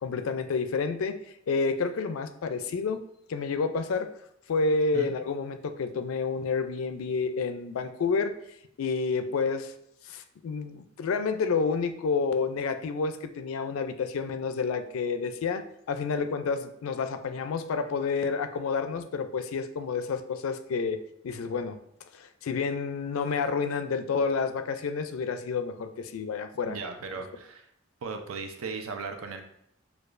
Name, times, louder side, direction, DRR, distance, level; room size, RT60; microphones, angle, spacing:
voice 1, 0.0-1.2 1.5-3.0 3.3-4.1 4.5-8.3 8.8-9.7 10.0-21.0 21.2-21.8 22.1-26.8, left 4 dB, 80° left, 9 dB, 0.4 m, -29 dB
voice 2, 26.7-27.7 28.0-29.4, right 4 dB, 80° right, 5 dB, 0.6 m, -37 dB
6.5 x 2.3 x 2.5 m, 0.75 s
head